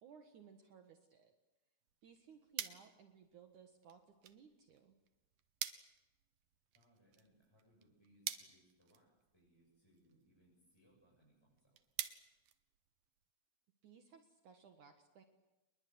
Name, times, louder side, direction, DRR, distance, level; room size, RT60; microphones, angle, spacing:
voice 1, 0.0-1.3 2.0-4.9 13.8-15.2, right 7 dB, 60° right, 5 dB, 2.8 m, -61 dB
sound 1, 1.8-13.3, right 11 dB, 80° right, 3.0 m, -50 dB
voice 2, 6.7-11.8, equal, 5° left, -4 dB, 7.8 m, -71 dB
29.0 x 22.0 x 8.1 m, 0.99 s
omnidirectional pair, 4.2 m